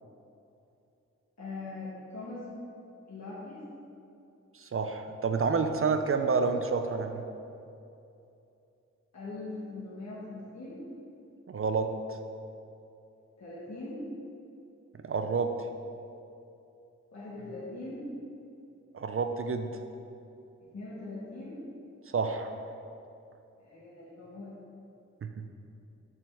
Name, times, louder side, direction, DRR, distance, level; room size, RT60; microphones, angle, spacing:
voice 1, 1.4-2.5 3.1-3.6 9.1-10.8 13.4-14.0 17.1-18.1 20.7-21.6 23.6-24.6, left 2 dB, 65° left, -9 dB, 1.5 m, -41 dB
voice 2, 4.5-7.2 11.5-11.9 15.0-15.5 18.9-19.7 22.1-22.5 25.2-25.5, right 4 dB, 50° right, 7 dB, 0.4 m, -29 dB
7.2 x 5.6 x 3.5 m, 2.7 s
wide cardioid pair, 85°, 29 cm